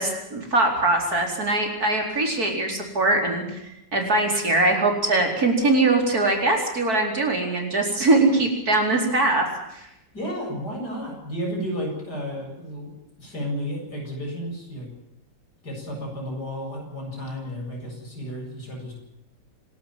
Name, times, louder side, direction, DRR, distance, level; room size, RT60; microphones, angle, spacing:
voice 1, 0.0-3.6 3.9-9.9, right 2 dB, 55° right, 2 dB, 5.0 m, -22 dB
voice 2, 10.1-12.9 13.2-14.9 15.6-18.9, equal, 65° left, 0 dB, 8.7 m, -32 dB
27.0 x 12.5 x 9.2 m, 0.84 s
omnidirectional pair, 1.9 m